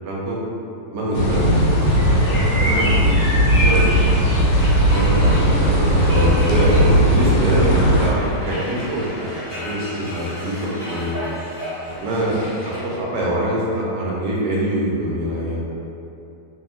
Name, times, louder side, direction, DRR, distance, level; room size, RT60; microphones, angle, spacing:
voice 1, 0.0-0.4 0.9-3.1 3.5-4.3 4.9-10.5 10.9-11.2 11.9-12.4 12.6-15.7, right 1 dB, 75° right, -5 dB, 1.1 m, -24 dB
sound 1, 1.1-8.1, equal, 90° left, 1.3 m, -17 dB
sound 2, 3.5-13.0, equal, 40° left, 0.8 m, -34 dB
2.8 x 2.7 x 2.5 m, 2.7 s
omnidirectional pair, 1.9 m